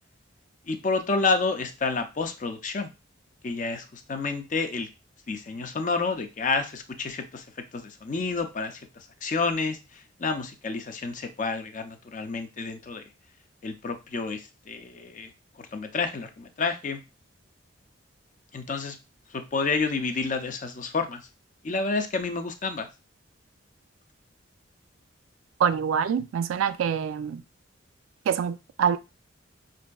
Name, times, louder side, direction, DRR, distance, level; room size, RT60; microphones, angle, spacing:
voice 1, 0.7-2.9 3.4-4.9 5.3-7.4 7.7-13.1 13.6-15.3 15.6-17.0 18.5-19.0 19.3-21.2 21.6-22.9, left 4 dB, 40° left, 0.4 m, -29 dB
voice 2, 25.6-27.4 28.3-29.0, right 7 dB, 90° right, 0.3 m, -25 dB
5.3 x 2.5 x 2.2 m
head